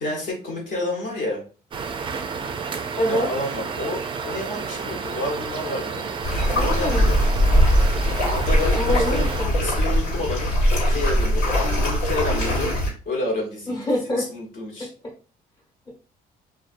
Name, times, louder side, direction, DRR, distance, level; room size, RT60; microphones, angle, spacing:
voice 1, 0.0-1.4 3.1-6.1 6.5-7.2 8.3-9.3 9.6-10.5 10.9-12.8 13.0-13.8 14.1-14.9, left 1 dB, 55° left, -1 dB, 1.1 m, -29 dB
sound 1, 1.7-9.4, right 5 dB, 30° right, 0.4 m, -31 dB
voice 2, 3.0-3.3 6.5-7.1 8.7-9.5 13.7-14.3, left 1 dB, 25° left, -2 dB, 1.0 m, -25 dB
sound 2, 6.2-12.9, equal, 85° left, 1.4 m, -21 dB
2.6 x 2.3 x 2.5 m, 0.36 s
cardioid pair, 110°, 17 cm